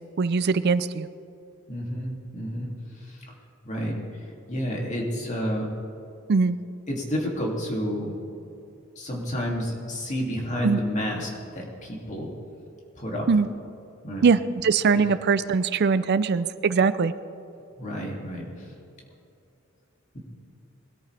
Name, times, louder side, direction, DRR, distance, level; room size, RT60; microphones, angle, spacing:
voice 1, 0.2-1.1 6.3-6.6 10.6-10.8 13.3-13.5 14.2-17.1, right 5 dB, 55° right, 14 dB, 0.4 m, -21 dB
voice 2, 1.7-3.2 3.6-4.0 4.5-5.7 6.9-8.2 9.0-12.3 12.9-13.3 14.0-14.3 14.9-15.0 17.8-18.7, equal, 35° left, -2 dB, 2.6 m, -30 dB
21.0 x 13.0 x 3.4 m, 2.6 s
head